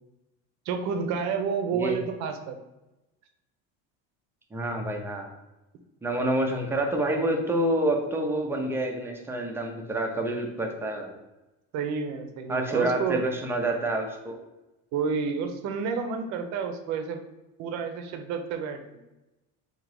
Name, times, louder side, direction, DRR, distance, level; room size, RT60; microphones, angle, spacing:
voice 1, 0.7-2.6 11.7-13.2 14.9-17.2 17.6-18.8, right 5 dB, 55° right, 7 dB, 0.7 m, -30 dB
voice 2, 4.5-5.3 6.0-11.2 12.5-14.4, right 1 dB, 5° right, 2 dB, 0.5 m, -28 dB
3.9 x 2.8 x 4.7 m, 1.0 s
cardioid pair, 155°, 33 cm